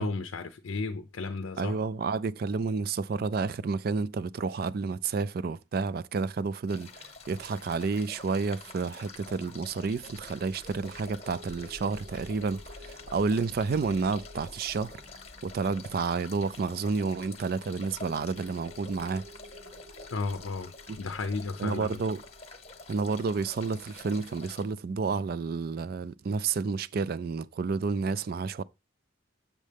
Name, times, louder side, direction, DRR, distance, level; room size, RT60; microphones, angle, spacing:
voice 1, 0.0-1.8 20.1-20.7 21.0-22.0, left 3 dB, 85° left, 0.6 m, -33 dB
voice 2, 1.6-15.0 15.4-19.2 20.9-21.0 21.6-22.2 22.9-28.6, right 4 dB, 50° right, 0.3 m, -30 dB
sound 1, 6.7-24.6, left 3 dB, 30° left, 1.0 m, -48 dB
sound 2, 9.3-24.2, left 1 dB, 75° right, 1.0 m, -52 dB
7.3 x 6.5 x 3.4 m
head